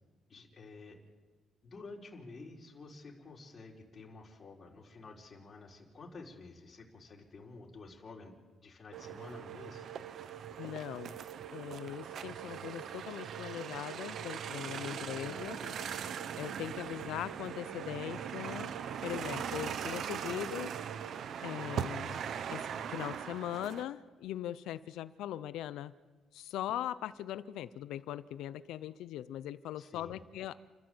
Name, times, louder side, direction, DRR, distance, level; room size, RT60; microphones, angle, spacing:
voice 1, 0.3-1.0 1.6-8.3 8.6-9.8 14.8-16.1 29.8-30.2, left 3 dB, 40° left, -2 dB, 4.3 m, -51 dB
sound 1, 8.9-23.8, right 8 dB, 65° right, 0.9 m, -41 dB
sound 2, 8.9-21.2, right 12 dB, 85° right, 1.8 m, -49 dB
voice 2, 10.6-11.2 11.5-15.6 16.4-18.8 19.0-20.7 21.4-22.2 22.5-25.9 26.3-30.5, left 12 dB, 85° left, 14 dB, 0.6 m, -40 dB
29.5 x 13.0 x 7.9 m, 1.3 s
cardioid pair, 90°, 0 cm